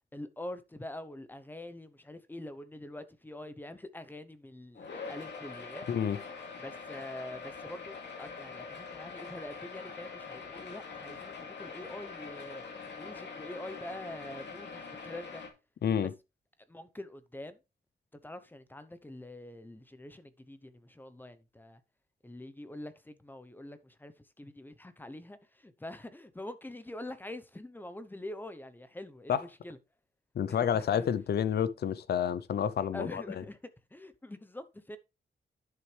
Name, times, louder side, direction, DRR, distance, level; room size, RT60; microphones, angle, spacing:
voice 1, 0.1-5.9 6.6-12.6 13.0-15.4 16.7-17.6 18.2-21.8 22.2-29.8 30.5-31.0 32.9-33.6 33.9-35.0, left 1 dB, 10° left, 0.8 m, -45 dB
sound 1, 4.8-15.5, left 5 dB, 85° left, 2.4 m, -44 dB
voice 2, 30.4-33.2, left 8 dB, 65° left, 0.5 m, -29 dB
11.0 x 6.4 x 3.3 m
wide cardioid pair, 175°, 18 cm